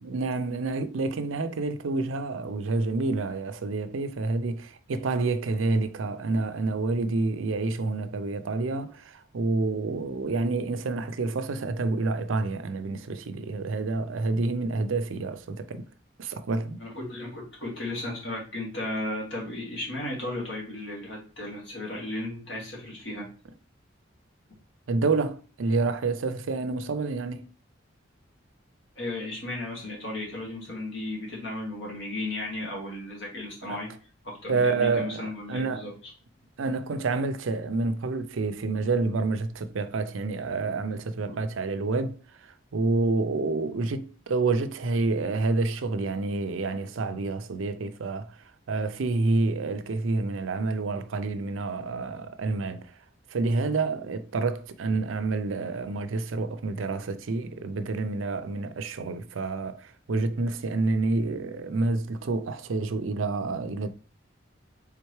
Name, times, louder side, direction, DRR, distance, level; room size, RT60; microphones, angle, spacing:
voice 1, 0.0-15.8 16.2-16.8 24.9-27.5 33.7-33.8 34.5-35.9 36.6-48.3 48.7-52.9 53.3-63.9, right 3 dB, 80° right, 0.5 m, -28 dB
voice 2, 16.8-23.3 29.0-33.9 34.2-35.9 41.2-41.4, left 2 dB, 65° left, 2.2 m, -35 dB
4.5 x 3.6 x 3.1 m
head